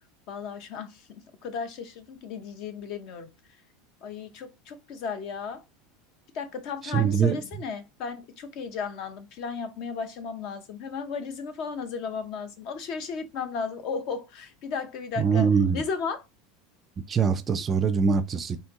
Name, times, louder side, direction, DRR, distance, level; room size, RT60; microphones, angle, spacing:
voice 1, 0.3-3.3 4.0-5.6 6.3-15.5 15.7-16.2, left 5 dB, 50° left, 0.8 m, -35 dB
voice 2, 6.9-7.4 15.2-15.8 17.1-18.6, right 6 dB, 20° right, 0.4 m, -23 dB
4.4 x 2.7 x 3.6 m
supercardioid pair, 150°, 0 cm